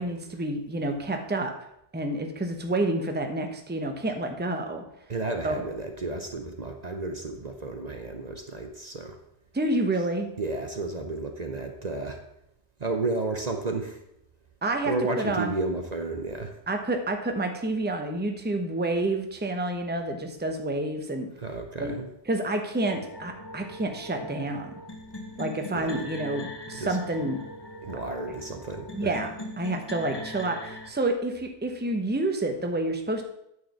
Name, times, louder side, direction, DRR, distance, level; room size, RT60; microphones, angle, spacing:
voice 1, 0.0-1.5 1.9-4.8 5.4-5.6 9.5-10.3 14.6-15.5 16.7-21.3 21.8-22.0 22.3-24.7 25.4-27.4 28.9-33.2, right 2 dB, 10° right, 4 dB, 0.9 m, -29 dB
voice 2, 5.1-9.2 10.4-12.2 12.8-14.0 14.9-16.5 21.4-22.1 25.7-26.0 26.7-27.0 27.8-29.2, right 3 dB, 45° right, 5 dB, 0.9 m, -32 dB
sound 1, 22.9-30.9, left 1 dB, 25° left, 1.0 m, -41 dB
9.3 x 4.8 x 7.1 m, 0.79 s
omnidirectional pair, 1.1 m